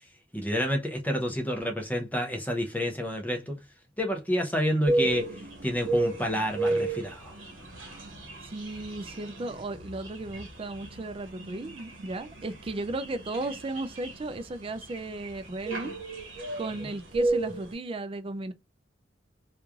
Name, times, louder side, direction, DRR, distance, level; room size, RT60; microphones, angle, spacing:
voice 1, 0.3-3.5 4.0-5.3 5.6-7.3, equal, 10° left, 0.7 m, -29 dB
sound 1, 4.9-17.7, right 2 dB, 80° right, 1.1 m, -33 dB
voice 2, 8.5-15.9 16.6-18.5, right 2 dB, 30° right, 0.4 m, -35 dB
3.1 x 2.4 x 3.5 m
head